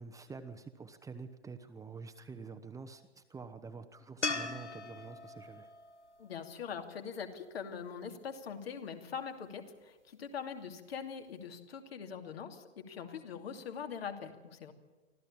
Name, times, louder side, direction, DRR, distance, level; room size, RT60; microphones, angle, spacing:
voice 1, 0.0-5.7, right 4 dB, 10° right, 8 dB, 1.0 m, -47 dB
sound 1, 4.2-7.5 10.7-10.8, left 3 dB, 90° left, 1.5 m, -40 dB
voice 2, 6.2-14.7, left 7 dB, 60° left, 5 dB, 2.7 m, -43 dB
25.0 x 15.0 x 8.7 m, 1.2 s
figure-of-eight pair, 105°, 34 cm